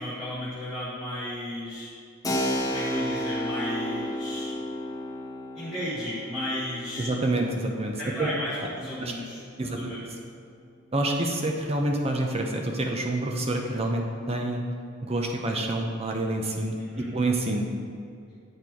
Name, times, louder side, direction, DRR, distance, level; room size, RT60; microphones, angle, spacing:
voice 1, 0.0-1.9 2.7-4.5 5.5-7.1 8.0-10.0 16.9-17.1, left 1 dB, ahead, -13 dB, 1.5 m, -34 dB
Keyboard (musical), 2.2-10.6, equal, 20° left, 0.7 m, -33 dB
voice 2, 7.0-8.3 9.0-9.1 9.6-9.9 10.9-14.6 15.0-17.7, right 2 dB, 30° right, 1 dB, 0.7 m, -27 dB
8.5 x 4.4 x 4.5 m, 2.4 s
head